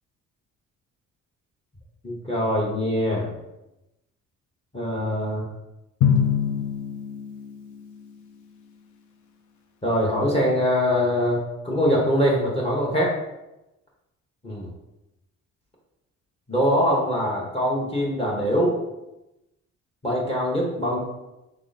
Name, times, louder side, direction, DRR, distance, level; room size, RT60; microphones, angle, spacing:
voice 1, 2.0-3.3 4.7-5.4 9.8-13.1 14.4-14.7 16.5-18.7 20.0-21.0, equal, 20° left, -3 dB, 1.0 m, -23 dB
Drum, 6.0-8.2, left 8 dB, 70° left, 0.6 m, -24 dB
4.2 x 2.9 x 3.9 m, 0.96 s
cardioid pair, 90°, 30 cm